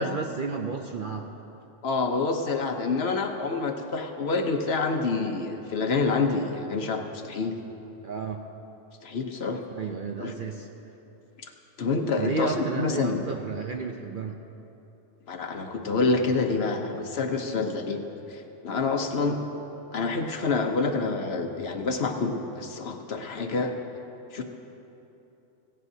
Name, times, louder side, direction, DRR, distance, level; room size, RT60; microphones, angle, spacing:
voice 1, 0.0-1.3 8.0-8.4 9.7-10.7 12.2-14.4, right 4 dB, 55° right, 3 dB, 0.6 m, -32 dB
voice 2, 1.8-7.5 9.0-9.6 10.2-10.3 11.8-13.2 15.3-18.0 18.3-19.4 19.9-23.7 24.3-24.4, left 4 dB, 55° left, 4 dB, 1.0 m, -27 dB
16.5 x 16.0 x 2.7 m, 3.0 s
omnidirectional pair, 1.4 m